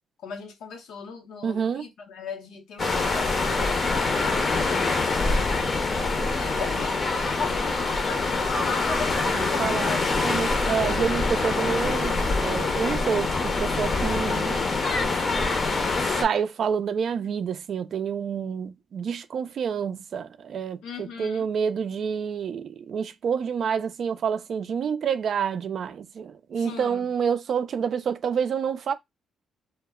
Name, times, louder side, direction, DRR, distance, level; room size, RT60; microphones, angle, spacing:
voice 1, 0.2-5.4 5.9-6.0 6.3-10.6 20.8-21.5 26.6-27.1, left 5 dB, 80° left, 0.7 m, -38 dB
voice 2, 1.4-1.9 9.3-14.6 16.0-28.9, right 7 dB, 60° right, 0.3 m, -28 dB
sound 1, 2.8-16.2, left 3 dB, 40° left, 0.6 m, -25 dB
2.1 x 2.0 x 3.5 m
cardioid pair, 90°, 0 cm